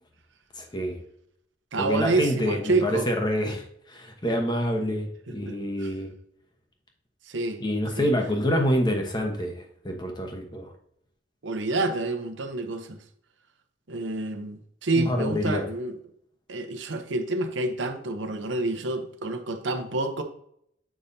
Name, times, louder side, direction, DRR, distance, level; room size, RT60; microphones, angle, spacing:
voice 1, 0.5-1.0 1.8-6.1 7.6-10.7 15.0-15.6, equal, 25° left, 1.1 m, -27 dB
voice 2, 1.7-3.1 5.5-5.9 7.3-7.6 8.0-8.1 11.4-13.0 13.9-16.0 16.5-20.2, right 2 dB, 90° right, 0.9 m, -28 dB
7.3 x 5.3 x 2.7 m
head